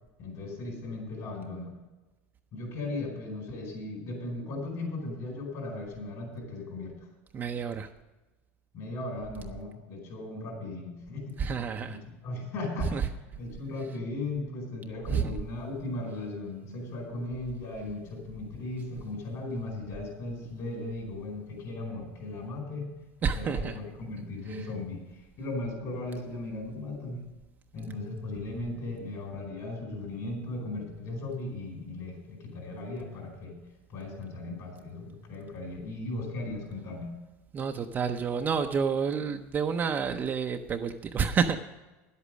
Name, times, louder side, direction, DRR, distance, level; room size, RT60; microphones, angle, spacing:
voice 1, 0.2-1.8 2.5-7.1 8.7-11.5 11.8-12.0 12.2-13.1 13.3-22.9 23.3-27.2 27.7-33.6 33.9-37.1, left 2 dB, 50° left, 2 dB, 4.6 m, -37 dB
voice 2, 7.3-7.9 11.4-12.0 12.9-13.1 15.1-15.4 23.2-23.8 24.5-24.6 37.5-41.6, right 6 dB, 25° right, 5 dB, 0.6 m, -29 dB
10.5 x 8.3 x 6.2 m, 1.1 s
supercardioid pair, 140°, 7 cm